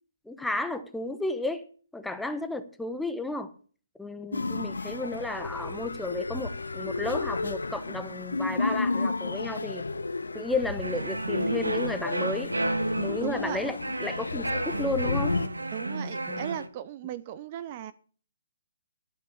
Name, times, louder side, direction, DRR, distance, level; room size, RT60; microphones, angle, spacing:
voice 1, 0.2-1.6 1.9-3.5 4.0-9.9 10.3-12.5 13.0-15.4 16.3-16.5, left 2 dB, 5° left, 9 dB, 1.1 m, -33 dB
sound 1, 4.3-15.5, left 3 dB, 80° left, 1.0 m, -32 dB
sound 2, 10.8-16.7, right 2 dB, 90° right, 1.4 m, -32 dB
voice 2, 13.2-13.7 15.7-17.9, right 11 dB, 35° right, 16 dB, 0.6 m, -37 dB
12.5 x 8.9 x 6.3 m, 0.42 s
figure-of-eight pair, 140°, 0 cm